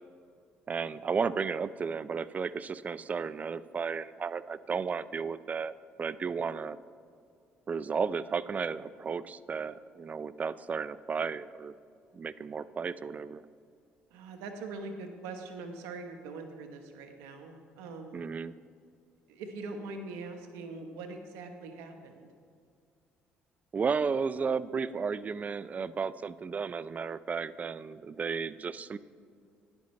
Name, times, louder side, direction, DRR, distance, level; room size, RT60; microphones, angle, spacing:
voice 1, 0.7-6.8 7.7-11.7 12.1-13.4 18.1-18.5 23.7-29.0, right 5 dB, 35° right, 17 dB, 0.4 m, -33 dB
voice 2, 14.1-18.2 19.3-22.3, right 3 dB, 85° right, 5 dB, 1.1 m, -42 dB
12.5 x 10.5 x 3.2 m, 2.3 s
supercardioid pair, 75°, 4 cm